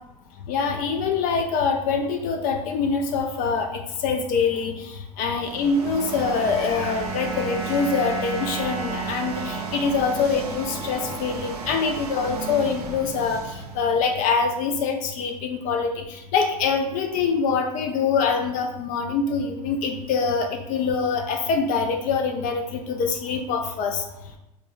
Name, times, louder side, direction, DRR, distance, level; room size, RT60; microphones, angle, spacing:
voice 1, 0.5-24.0, left 5 dB, 45° left, 4 dB, 0.4 m, -24 dB
sound 1, 5.2-14.4, right 5 dB, 85° right, 0.5 m, -35 dB
sound 2, 5.5-11.9, right 5 dB, 40° right, 0.7 m, -35 dB
3.3 x 2.1 x 2.3 m, 0.87 s
hypercardioid pair, 90°, 19 cm